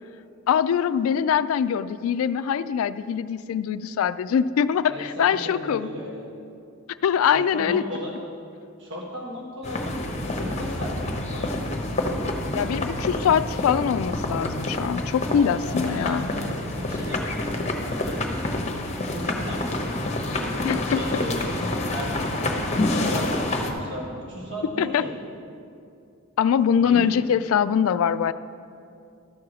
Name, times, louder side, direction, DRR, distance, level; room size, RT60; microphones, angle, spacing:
voice 1, 0.5-5.9 7.0-7.8 12.5-16.3 20.6-21.0 24.8-25.0 26.4-28.3, left 8 dB, 85° left, 16 dB, 0.3 m, -23 dB
voice 2, 4.8-6.3 7.3-8.1 8.8-11.8 15.5-18.7 19.1-20.0 20.3-21.4 21.8-25.1 26.7-27.1, left 1 dB, 60° right, -3 dB, 1.5 m, -35 dB
sound 1, 9.6-23.7, left 1 dB, 35° left, 0.8 m, -28 dB
12.5 x 4.7 x 6.3 m, 2.5 s
head